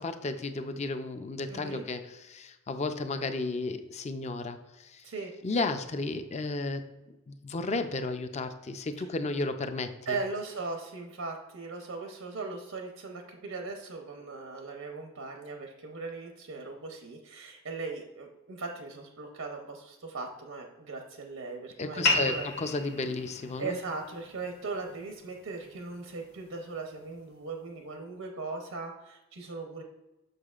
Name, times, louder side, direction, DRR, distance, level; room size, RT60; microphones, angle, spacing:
voice 1, 0.0-5.0 5.4-6.8 7.3-10.2 21.8-23.8, left 3 dB, 30° left, 8 dB, 0.5 m, -33 dB
voice 2, 1.5-1.8 5.0-5.3 10.1-22.5 23.6-29.8, right 3 dB, 85° right, 3 dB, 0.8 m, -39 dB
sound 1, 22.0-27.1, left 2 dB, 50° left, 1.1 m, -34 dB
6.7 x 6.3 x 2.4 m, 1.0 s
head